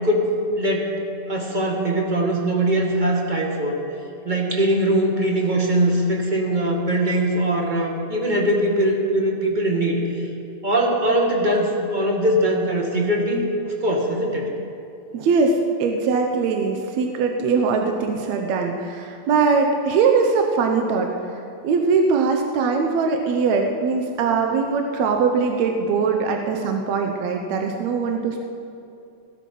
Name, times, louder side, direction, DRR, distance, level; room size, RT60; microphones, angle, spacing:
voice 1, 0.0-1.0 1.3-3.8 4.2-10.0 10.6-14.5, right 1 dB, 25° right, 0 dB, 1.2 m, -21 dB
voice 2, 15.1-21.1 21.6-28.5, right 4 dB, 75° right, 3 dB, 2.1 m, -21 dB
16.5 x 12.5 x 5.5 m, 2.6 s
omnidirectional pair, 3.3 m